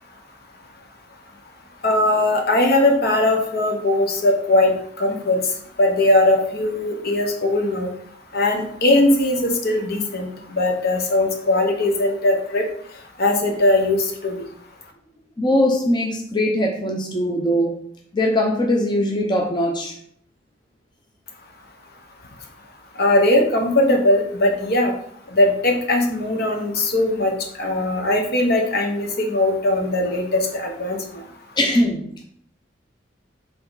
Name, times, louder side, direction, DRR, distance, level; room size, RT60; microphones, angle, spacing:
voice 1, 1.8-5.4 5.8-7.9 8.3-12.6 13.2-14.0 14.2-14.4 23.0-24.9 25.3-31.0, left 1 dB, 55° left, 2 dB, 1.2 m, -19 dB
voice 2, 15.4-17.7 18.1-19.9 31.6-32.2, left 1 dB, 25° left, 0 dB, 0.7 m, -21 dB
6.7 x 3.8 x 4.0 m, 0.66 s
head